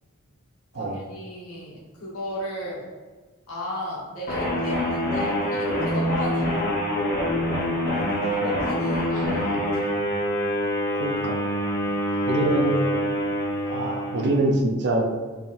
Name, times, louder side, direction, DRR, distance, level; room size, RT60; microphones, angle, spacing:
voice 1, 0.7-2.9 3.5-6.5 8.2-10.1 11.8-12.3, left 1 dB, 90° left, -6 dB, 1.3 m, -35 dB
sound 1, 4.3-14.5, equal, 45° left, 1.0 m, -25 dB
voice 2, 11.0-11.4 12.3-12.8 13.7-15.1, right 2 dB, 55° right, 1 dB, 0.6 m, -24 dB
4.6 x 3.6 x 2.5 m, 1.4 s
head